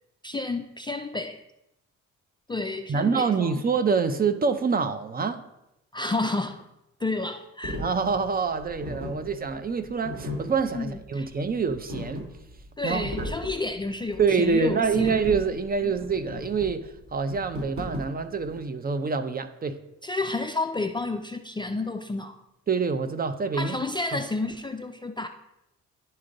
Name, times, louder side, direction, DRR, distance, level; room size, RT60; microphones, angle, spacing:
voice 1, 0.2-1.4 2.5-3.5 5.9-6.7 7.0-7.8 10.7-11.3 12.8-15.1 15.8-15.9 20.0-22.4 23.5-25.3, left 2 dB, 15° left, 0.3 m, -30 dB
voice 2, 2.9-5.4 7.8-12.3 12.8-13.1 14.2-19.8 22.7-23.8 24.1-24.2, right 5 dB, 30° right, 0.6 m, -26 dB
sound 1, 7.6-18.6, left 1 dB, 45° right, 2.4 m, -37 dB
11.0 x 3.7 x 3.9 m
cardioid pair, 90°, 30 cm